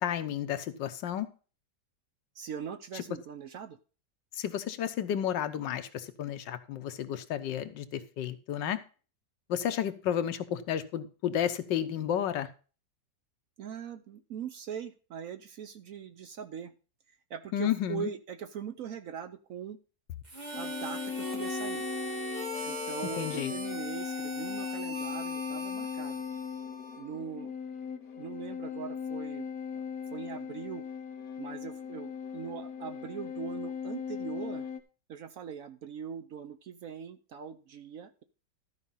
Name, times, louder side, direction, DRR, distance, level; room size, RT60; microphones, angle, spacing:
voice 1, 0.0-1.3 4.3-8.8 9.5-12.5 17.5-18.1 23.2-23.5, left 10 dB, 85° left, 10 dB, 1.5 m, -32 dB
voice 2, 2.3-3.8 13.6-16.7 17.1-19.8 20.6-21.9 22.7-26.2 27.0-27.5 28.2-29.8 30.1-30.8 31.4-34.7 35.1-38.2, right 7 dB, 65° right, 9 dB, 0.9 m, -41 dB
Harmonica, 20.2-27.2, equal, 25° right, 1.5 m, -39 dB
sound 1, 20.5-34.8, left 7 dB, 60° left, 1.3 m, -38 dB
13.0 x 5.0 x 5.5 m, 0.36 s
omnidirectional pair, 1.9 m